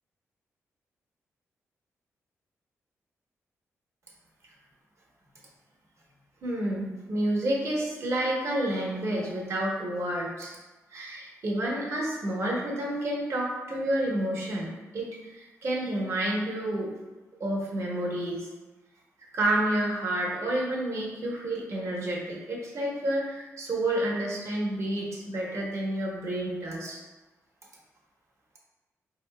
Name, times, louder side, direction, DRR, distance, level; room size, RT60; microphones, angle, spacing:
voice 1, 6.4-10.6 10.9-16.9 17.4-18.5 19.3-27.0, right 1 dB, 55° right, -3 dB, 1.0 m, -29 dB
4.7 x 2.6 x 2.2 m, 1.2 s
cardioid pair, 80°, 6 cm